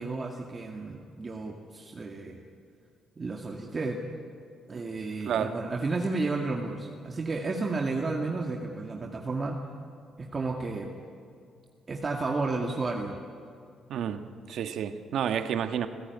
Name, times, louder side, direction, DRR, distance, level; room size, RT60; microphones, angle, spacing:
voice 1, 0.0-2.4 3.2-4.0 4.7-9.6 10.2-10.9 11.9-13.2, right 3 dB, 35° right, 2 dB, 2.1 m, -32 dB
voice 2, 13.9-15.9, right 8 dB, 70° right, 9 dB, 1.5 m, -30 dB
29.0 x 16.0 x 9.5 m, 2.3 s
cardioid pair, 90°, 0 cm